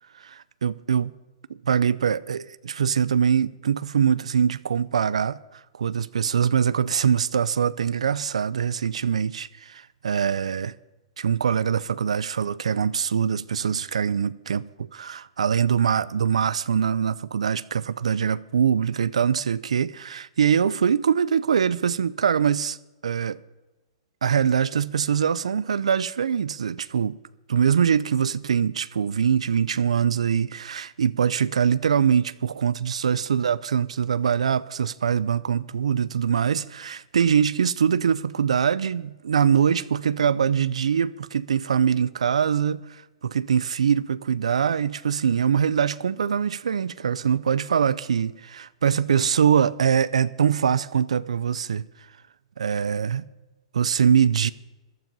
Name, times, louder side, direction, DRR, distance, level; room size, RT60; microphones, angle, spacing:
voice 1, 0.1-1.1 1.6-10.7 11.2-22.8 23.0-23.4 24.2-27.2 27.5-51.9 52.6-53.3 53.7-54.5, right 7 dB, 90° right, 0.5 m, -23 dB
14.5 x 12.0 x 5.4 m
hypercardioid pair, 135°, 3 cm